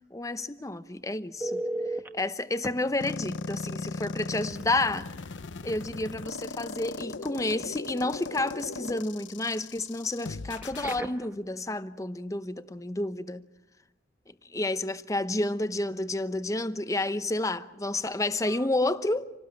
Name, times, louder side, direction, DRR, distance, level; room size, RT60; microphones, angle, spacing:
voice 1, 0.1-1.6 2.1-5.1 5.6-13.4 14.5-19.3, left 2 dB, 15° left, 0.8 m, -30 dB
Telephone, 1.4-2.1 2.6-2.7 4.5-4.6 5.0-5.2 10.5-11.4 18.5-18.7, right 2 dB, 10° right, 1.1 m, -34 dB
sound 1, 3.0-11.0, left 3 dB, 85° left, 0.8 m, -38 dB
27.5 x 19.0 x 8.6 m
head